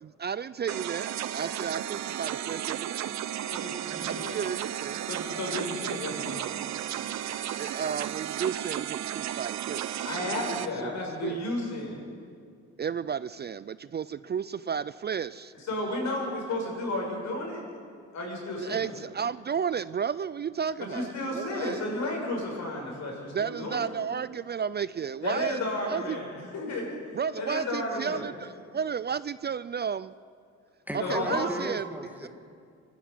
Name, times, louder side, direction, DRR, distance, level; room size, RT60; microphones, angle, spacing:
voice 1, 0.0-3.1 4.1-5.0 7.6-10.6 10.8-11.4 12.8-15.5 18.6-21.8 23.3-26.2 27.1-30.1 30.9-31.8 32.2-32.3, right 7 dB, 35° right, 16 dB, 0.4 m, -33 dB
sound 1, 0.7-10.7, right 11 dB, 65° right, 0.9 m, -34 dB
voice 2, 3.5-4.4 5.1-6.5 9.9-12.0 15.5-17.6 18.1-18.9 20.9-23.9 25.2-27.0 27.4-28.3 31.0-31.5, left 2 dB, 65° left, 0 dB, 7.4 m, -33 dB
voice 3, 30.9-32.3, right 1 dB, 5° right, 3 dB, 2.2 m, -36 dB
24.0 x 12.5 x 9.5 m, 2.2 s
cardioid pair, 90°, 30 cm